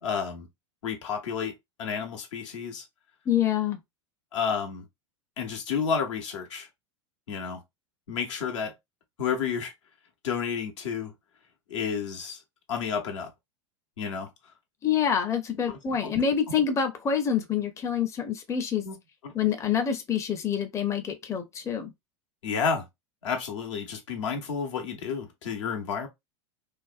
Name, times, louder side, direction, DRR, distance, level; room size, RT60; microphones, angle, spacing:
voice 1, 0.0-0.5 0.8-2.8 4.3-4.8 5.4-6.7 7.3-7.6 8.1-8.7 9.2-9.7 10.2-11.1 11.7-12.4 12.7-13.3 14.0-14.3 15.7-15.8 18.8-19.0 19.2-19.3 22.4-22.9 23.2-26.1, left 6 dB, 75° left, 0.8 m, -31 dB
voice 2, 3.3-3.8 14.8-18.9 19.3-21.9, left 8 dB, 20° left, 0.5 m, -26 dB
2.5 x 2.1 x 2.3 m
hypercardioid pair, 100°, 16 cm